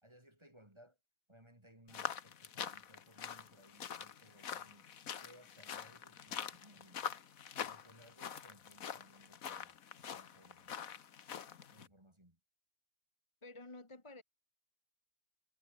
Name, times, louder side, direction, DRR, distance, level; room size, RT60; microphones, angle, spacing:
voice 1, 0.0-1.0 1.3-4.9 5.2-7.1 7.6-11.3 11.7-12.4, right 1 dB, 20° right, 3.5 m, -63 dB
sound 1, 1.9-11.9, left 8 dB, 70° left, 1.6 m, -45 dB
voice 2, 13.4-14.2, left 2 dB, 20° left, 1.5 m, -51 dB
omnidirectional pair, 1.6 m